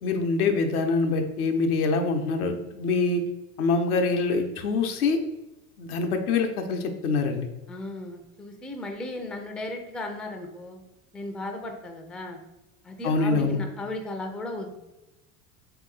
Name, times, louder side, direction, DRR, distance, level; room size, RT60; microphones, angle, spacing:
voice 1, 0.0-3.2 3.6-5.2 5.8-7.5 13.0-13.6, left 4 dB, 75° left, 5 dB, 0.7 m, -25 dB
voice 2, 7.7-10.8 11.1-12.4 12.8-14.7, left 2 dB, ahead, 3 dB, 0.3 m, -35 dB
3.7 x 2.9 x 3.7 m, 0.99 s
hypercardioid pair, 75°, 45 cm